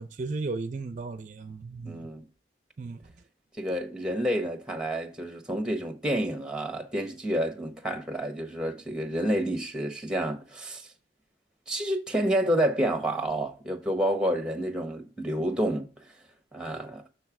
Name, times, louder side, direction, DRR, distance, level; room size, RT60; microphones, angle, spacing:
voice 1, 0.0-2.1 2.8-3.0, right 3 dB, 45° right, 0.4 m, -35 dB
voice 2, 1.8-2.2 3.6-10.9 11.7-16.0 16.5-17.0, right 1 dB, 5° right, 1.1 m, -29 dB
6.8 x 3.2 x 5.9 m
head